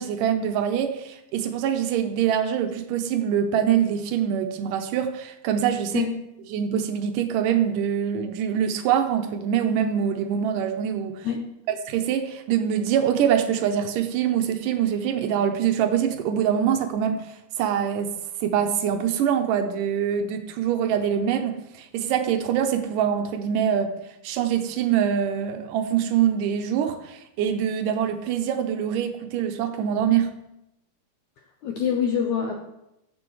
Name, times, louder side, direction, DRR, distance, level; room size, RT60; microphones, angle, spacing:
voice 1, 0.0-6.1 6.5-11.3 11.7-18.1 18.4-23.9 24.2-30.3, right 9 dB, 80° right, 7 dB, 2.0 m, -24 dB
voice 2, 31.6-32.6, left 7 dB, 80° left, 2 dB, 1.7 m, -25 dB
15.0 x 7.0 x 3.1 m, 0.86 s
omnidirectional pair, 4.3 m